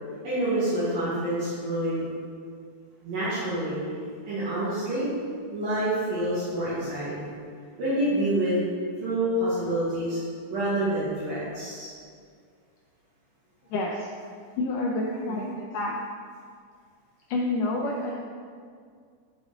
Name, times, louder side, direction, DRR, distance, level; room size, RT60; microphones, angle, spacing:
voice 1, 0.2-2.1 3.0-3.8 4.3-5.1 5.5-7.3 7.8-8.6 9.0-10.2 10.5-11.9 15.3-15.4, right 1 dB, 65° right, -13 dB, 3.6 m, -27 dB
voice 2, 13.7-14.1 14.6-16.0 17.3-18.2, left 2 dB, 85° left, -1 dB, 1.8 m, -28 dB
11.0 x 5.2 x 3.8 m, 2.1 s
omnidirectional pair, 4.4 m